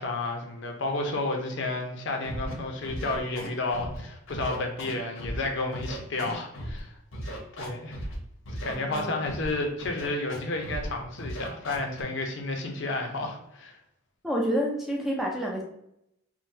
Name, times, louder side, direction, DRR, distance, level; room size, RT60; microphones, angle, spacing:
voice 1, 0.0-7.0 7.6-8.0 8.6-13.8, left 2 dB, 60° left, 2 dB, 0.6 m, -31 dB
Scratching (performance technique), 2.2-2.5 2.8-4.0 4.3-5.4 5.7-6.8 7.1-8.2 8.5-9.5 9.8-10.4 10.6-10.9 11.2-12.0, equal, 90° left, 1.1 m, -36 dB
voice 2, 8.7-9.2 14.2-15.6, equal, ahead, -1 dB, 0.4 m, -29 dB
3.7 x 2.2 x 2.7 m, 0.79 s
head